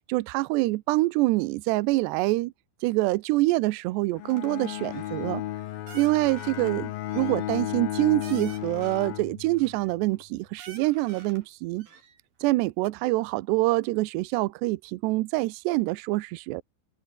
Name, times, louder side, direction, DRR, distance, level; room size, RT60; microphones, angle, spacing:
voice 1, 0.1-2.5 2.8-5.4 5.9-11.9 12.4-16.6, right 20 dB, 85° right, 2.4 m, -25 dB
Bowed string instrument, 4.1-9.9, left 13 dB, 70° left, 2.3 m, -34 dB
sound 1, 4.3-4.5 4.9-5.3 5.9-6.7 7.1-9.1 9.6-10.2 10.6-11.5 11.8-12.5 12.8-12.9, right 6 dB, 45° right, 5.6 m, -49 dB
omnidirectional pair, 5.7 m